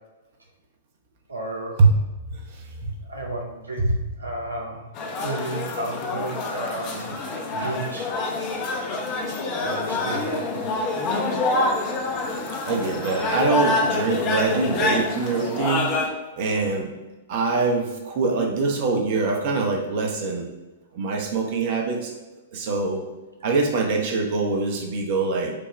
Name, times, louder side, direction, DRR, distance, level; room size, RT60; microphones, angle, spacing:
voice 1, 1.3-1.8 3.0-3.9 4.2-4.9 5.2-8.2 9.3-10.7, right 1 dB, 85° right, 0 dB, 0.6 m, -33 dB
voice 2, 2.3-2.9 3.8-3.9 12.6-15.9 16.3-16.9 17.3-20.5 20.9-22.1 22.5-23.0 23.4-25.5, right 4 dB, 45° right, 1 dB, 0.9 m, -24 dB
sound 1, 5.0-16.1, left 3 dB, 35° left, 0.8 m, -26 dB
5.2 x 2.3 x 4.4 m, 1.1 s
figure-of-eight pair, 105°, 0 cm